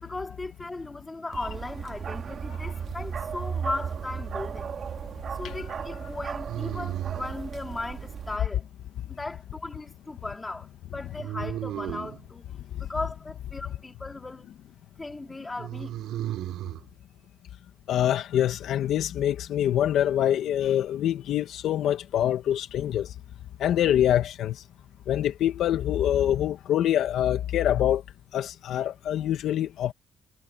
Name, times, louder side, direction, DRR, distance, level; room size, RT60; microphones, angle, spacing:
voice 1, 0.0-4.7 5.3-8.7 9.1-12.5 12.8-14.5 15.0-15.9, left 2 dB, 20° left, 3.8 m, -37 dB
Bark, 1.3-8.4, right 7 dB, 55° right, 2.0 m, -35 dB
sound 1, 3.7-4.4 6.4-7.4 11.2-12.2 15.6-16.8, right 13 dB, 85° right, 5.3 m, -34 dB
voice 2, 17.9-23.1 23.6-24.6 25.1-28.0 28.3-29.9, left 11 dB, 75° left, 2.0 m, -25 dB
cardioid pair, 90°, 0 cm